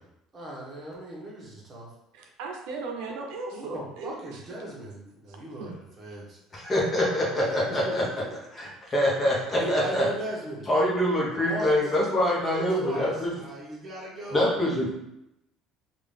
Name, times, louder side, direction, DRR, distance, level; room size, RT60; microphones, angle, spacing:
voice 1, 0.3-1.9 3.5-6.4 7.8-8.1 8.6-8.7 9.5-10.7 11.4-12.0 12.7-14.4, right 1 dB, 25° right, -4 dB, 1.1 m, -38 dB
voice 2, 2.1-4.4 5.6-5.8, right 4 dB, 80° right, 2 dB, 0.6 m, -37 dB
voice 3, 6.5-8.0 8.5-10.1 10.7-13.3 14.3-14.9, left 1 dB, 20° left, -4 dB, 1.0 m, -25 dB
3.7 x 2.4 x 3.4 m, 0.85 s
cardioid pair, 145°, 0 cm